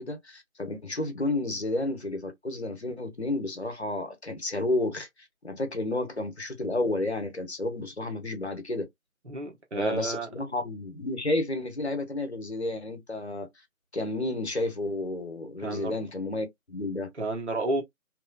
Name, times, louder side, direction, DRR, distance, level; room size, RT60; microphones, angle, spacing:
voice 1, 0.0-5.1 5.4-8.9 9.8-13.5 13.9-17.1, left 2 dB, 50° left, 0.9 m, -31 dB
voice 2, 9.3-10.3 15.6-15.9 17.2-17.8, right 2 dB, 55° right, 1.1 m, -31 dB
2.9 x 2.6 x 2.2 m
figure-of-eight pair, 175°, 43 cm